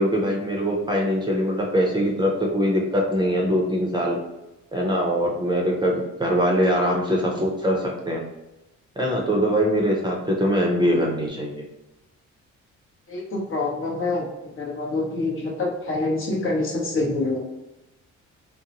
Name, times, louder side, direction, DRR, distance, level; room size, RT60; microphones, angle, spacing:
voice 1, 0.0-4.2 4.7-8.2 9.0-11.5, equal, 15° right, -1 dB, 0.6 m, -22 dB
voice 2, 13.1-17.4, left 2 dB, 45° left, -1 dB, 0.7 m, -26 dB
2.6 x 2.0 x 2.8 m, 0.97 s
cardioid pair, 90°, 30 cm